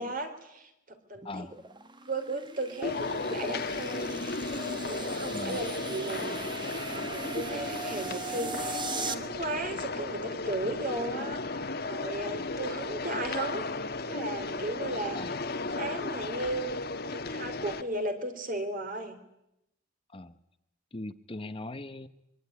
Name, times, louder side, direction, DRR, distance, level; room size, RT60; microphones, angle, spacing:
voice 1, 0.0-1.5 2.1-13.6 14.1-15.2 15.8-16.8 17.1-19.2, right 2 dB, 45° right, 7 dB, 3.5 m, -36 dB
voice 2, 1.2-1.6 5.3-5.6 12.3-12.5 15.1-15.4 20.1-20.4 20.9-22.1, left 2 dB, 25° left, 10 dB, 0.9 m, -40 dB
sound 1, 1.2-9.1, right 4 dB, 25° right, 1.5 m, -39 dB
sound 2, 2.8-17.8, left 3 dB, 50° left, 1.5 m, -35 dB
25.0 x 23.5 x 9.6 m, 0.86 s
head